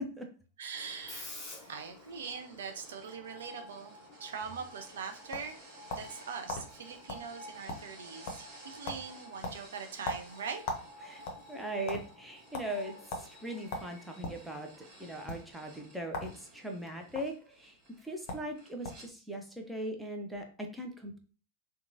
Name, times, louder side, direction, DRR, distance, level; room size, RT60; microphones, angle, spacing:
voice 1, 0.6-1.3 1.6-3.9 4.2-5.6 5.9-10.6, right 6 dB, 60° right, 6 dB, 0.4 m, -42 dB
Screech, 0.7-17.3, left 1 dB, 15° left, 1.2 m, -52 dB
sound 1, 1.6-19.1, right 2 dB, 40° right, 1.4 m, -57 dB
sound 2, 4.9-6.2 6.5-6.6 7.1-7.3 7.5-8.0 8.3-8.6 8.9-9.0 9.4-10.9 11.2-12.0 12.5-12.7 13.1-13.3 13.7-14.4 15.2-15.4 16.1-16.3 16.6-17.2 18.0-18.1 18.3-18.5 18.8-19.1, left 2 dB, 45° left, 0.6 m, -38 dB
voice 2, 11.5-21.2, right 1 dB, 5° right, 2 dB, 0.6 m, -40 dB
2.8 x 2.2 x 2.6 m, 0.37 s
figure-of-eight pair, 90°, 0 cm